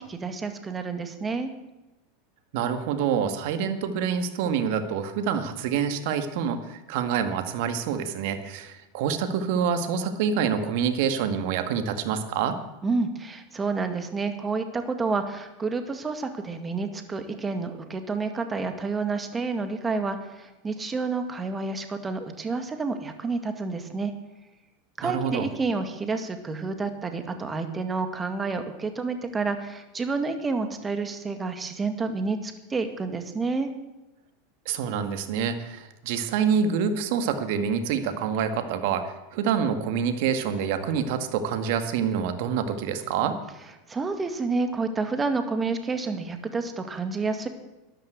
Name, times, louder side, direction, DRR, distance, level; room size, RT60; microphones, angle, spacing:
voice 1, 0.0-1.5 12.8-24.1 25.0-33.7 43.9-47.5, right 4 dB, 20° right, 7 dB, 2.1 m, -29 dB
voice 2, 2.5-12.6 25.0-25.5 34.7-43.4, right 7 dB, 65° right, 9 dB, 1.9 m, -27 dB
13.0 x 11.0 x 8.0 m, 1.0 s
hypercardioid pair, 105°, 0 cm